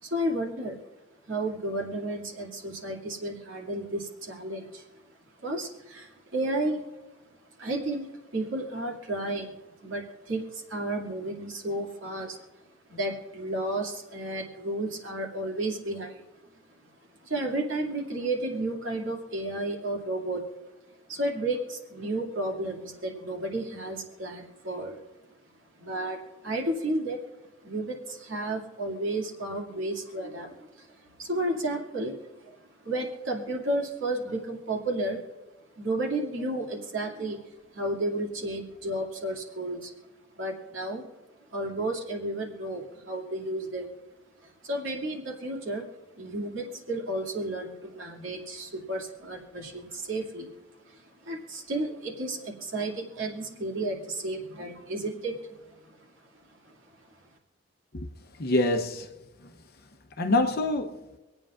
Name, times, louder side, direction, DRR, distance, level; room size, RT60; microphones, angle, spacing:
voice 1, 0.0-0.8 1.3-5.0 5.4-6.9 7.6-12.5 12.9-16.2 17.2-20.4 21.1-25.0 25.8-27.2 27.6-32.6 32.8-35.2 35.8-37.4 37.7-39.9 40.4-41.0 41.5-43.9 44.4-45.9 46.2-50.5 50.8-56.1 56.6-56.7, right 1 dB, 80° right, 2.4 m, -32 dB
voice 2, 57.9-59.1 59.4-59.5 60.2-61.0, left 2 dB, 50° left, 0.8 m, -26 dB
26.0 x 8.8 x 2.5 m
head